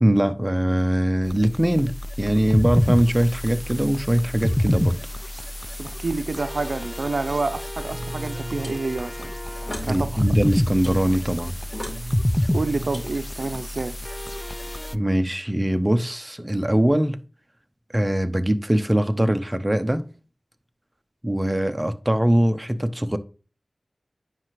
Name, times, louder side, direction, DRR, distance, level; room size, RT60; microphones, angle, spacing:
voice 1, 0.0-5.0 9.9-11.5 14.9-17.2 17.9-20.1 21.2-23.2, right 1 dB, 15° right, 0.8 m, -22 dB
sound 1, 1.2-15.0, left 1 dB, 10° left, 0.4 m, -28 dB
voice 2, 5.8-9.3 9.8-10.2 12.5-13.9, right 3 dB, 75° right, 0.5 m, -28 dB
sound 2, 7.8-13.7, right 1 dB, 40° left, 4.2 m, -36 dB
9.5 x 5.7 x 3.1 m
wide cardioid pair, 65°, 0 cm